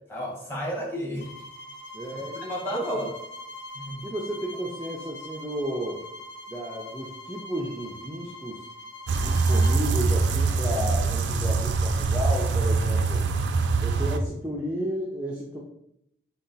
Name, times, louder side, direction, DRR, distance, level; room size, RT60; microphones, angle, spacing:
voice 1, 0.1-1.3 2.5-3.1 3.7-4.1, equal, 10° left, -4 dB, 1.1 m, -32 dB
sound 1, 1.2-9.8, left 1 dB, 75° left, 0.6 m, -42 dB
voice 2, 1.9-2.8 4.0-6.0 6.5-8.6 9.2-13.2 13.8-15.6, equal, 10° right, -3 dB, 0.4 m, -33 dB
sound 2, 9.1-14.2, right 3 dB, 75° right, 0.4 m, -23 dB
4.1 x 2.2 x 3.9 m, 0.77 s
head